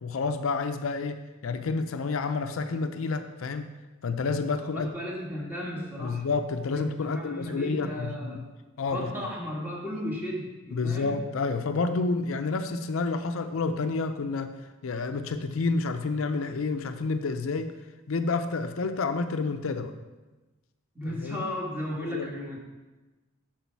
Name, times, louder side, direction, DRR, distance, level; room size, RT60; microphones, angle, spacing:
voice 1, 0.0-3.7 4.0-4.9 6.0-8.4 8.8-9.3 10.7-14.5 14.8-17.7 18.1-19.9 21.2-21.4 21.9-22.3, left 4 dB, 70° left, 8 dB, 0.5 m, -29 dB
voice 2, 4.7-6.3 6.7-8.5 8.9-11.2 21.0-22.6, left 1 dB, 10° right, -3 dB, 1.8 m, -35 dB
8.2 x 6.3 x 4.6 m, 1.2 s
head